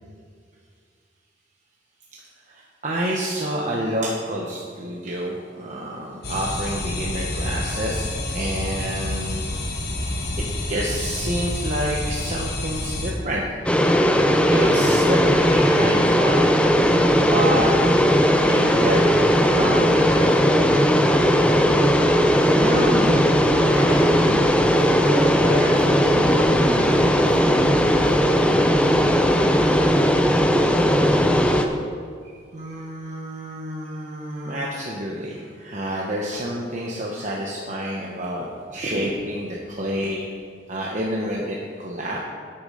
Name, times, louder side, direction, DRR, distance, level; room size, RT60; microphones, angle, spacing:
voice 1, 2.5-9.5 10.4-13.4 14.5-16.4 17.2-17.7 18.4-19.2 19.4-20.3 32.2-40.3 40.7-42.2, right 1 dB, 40° right, -3 dB, 1.0 m, -28 dB
sound 1, 6.2-13.1, left 2 dB, 55° left, 1.5 m, -28 dB
sound 2, 13.7-31.7, equal, 5° left, 0.6 m, -18 dB
voice 2, 22.3-24.4 25.1-27.8, equal, 60° right, -6 dB, 3.2 m, -30 dB
11.0 x 8.7 x 5.0 m, 2.1 s
head